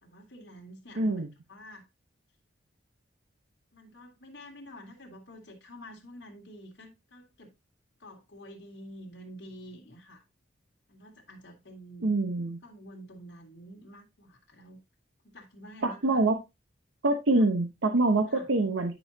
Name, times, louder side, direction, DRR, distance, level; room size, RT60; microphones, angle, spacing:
voice 1, 0.0-1.1 1.5-1.9 3.7-7.5 8.0-10.2 10.9-12.1 12.6-14.8 15.2-16.2 17.3-17.5 18.3-18.5, equal, 60° left, 2.2 m, -48 dB
voice 2, 1.0-1.3 12.0-12.6 15.8-16.4 17.0-18.9, right 2 dB, 85° right, 1.0 m, -25 dB
10.5 x 5.5 x 2.8 m
head